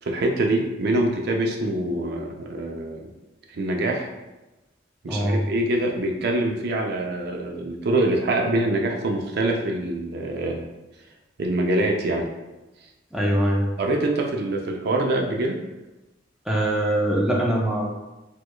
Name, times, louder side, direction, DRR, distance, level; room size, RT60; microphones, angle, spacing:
voice 1, 0.0-3.1 3.5-4.1 5.0-10.6 11.4-12.3 13.8-15.6, right 1 dB, 60° right, 2 dB, 0.4 m, -24 dB
voice 2, 5.0-5.4 13.1-13.6 16.5-17.9, right 1 dB, 5° right, -3 dB, 0.4 m, -22 dB
4.6 x 2.3 x 2.2 m, 1.0 s
head